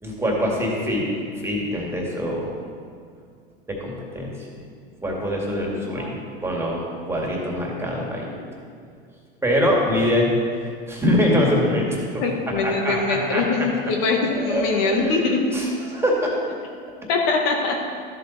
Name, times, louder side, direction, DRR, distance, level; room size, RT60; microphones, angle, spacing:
voice 1, 0.0-1.0 1.4-2.6 3.7-4.6 5.0-8.3 9.4-10.3 10.9-13.7 14.3-15.3 15.5-16.3, equal, 10° right, -2 dB, 2.2 m, -24 dB
voice 2, 5.8-6.1 12.2-15.4 17.1-17.8, left 4 dB, 65° left, 1 dB, 1.7 m, -23 dB
13.0 x 7.5 x 4.1 m, 2.2 s
supercardioid pair, 115°, 29 cm